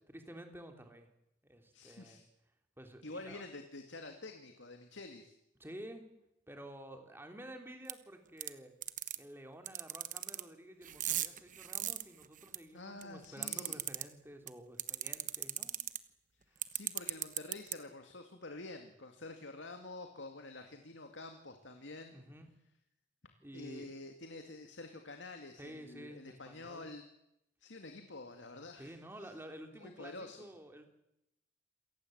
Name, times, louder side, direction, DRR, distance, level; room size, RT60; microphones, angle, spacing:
voice 1, 0.1-1.1 1.4-2.2 2.8-3.4 5.5-6.1 6.5-8.7 9.2-15.9 16.5-16.7 22.1-22.5 23.4-23.9 25.6-26.9 28.8-30.9, right 1 dB, 10° right, 4 dB, 3.3 m, -51 dB
voice 2, 1.7-2.2 3.0-5.3 12.7-13.7 16.7-22.2 23.5-27.1 27.6-28.9 29.2-29.3 29.7-30.5, left 2 dB, 75° left, 5 dB, 2.2 m, -48 dB
sound 1, 7.9-8.0 8.4-8.5 8.8-9.2 9.7-10.4 10.8-12.6 13.0-14.0 14.5-14.6 14.8-16.0 16.6-17.7, right 12 dB, 45° right, 1.2 m, -36 dB
27.5 x 18.0 x 8.0 m, 0.84 s
head